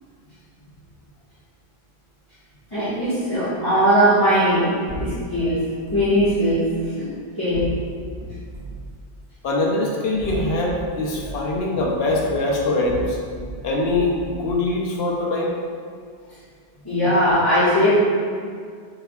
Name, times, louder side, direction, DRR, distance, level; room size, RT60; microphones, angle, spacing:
voice 1, 2.7-5.6 5.9-6.7 7.0-7.7 16.8-18.0, equal, 20° left, -15 dB, 1.3 m, -19 dB
sound 1, 4.9-6.4 7.5-8.9 10.0-10.9 11.2-13.5 13.9-14.5, equal, 50° right, 1.4 m, -34 dB
voice 2, 9.4-13.2 13.6-15.6 17.1-17.2, left 2 dB, 75° left, -2 dB, 0.8 m, -23 dB
5.6 x 3.4 x 2.3 m, 2.1 s
omnidirectional pair, 1.0 m